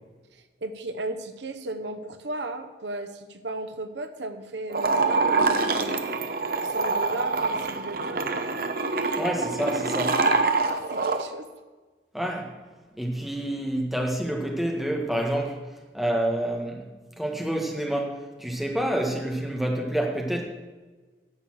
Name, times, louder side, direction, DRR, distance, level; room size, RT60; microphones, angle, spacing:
voice 1, 0.3-6.2 6.6-8.3 9.5-9.8 10.6-11.5, right 2 dB, 85° right, 8 dB, 0.9 m, -36 dB
sound 1, 4.7-11.2, right 3 dB, 55° right, 0.9 m, -25 dB
voice 2, 9.2-10.2 12.1-12.6 13.0-15.6 15.9-16.9 17.2-20.4, right 1 dB, ahead, 0 dB, 1.6 m, -28 dB
11.0 x 7.1 x 7.4 m, 1.3 s
head